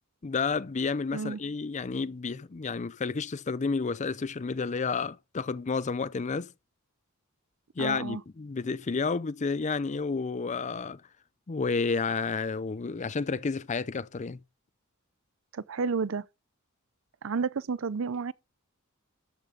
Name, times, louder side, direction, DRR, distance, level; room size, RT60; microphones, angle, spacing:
voice 1, 0.2-6.5 7.8-11.0 11.5-14.4, left 4 dB, 35° left, 0.5 m, -31 dB
voice 2, 7.8-8.2 15.5-16.2 17.2-18.3, right 5 dB, 65° right, 0.5 m, -31 dB
13.5 x 8.4 x 3.9 m
head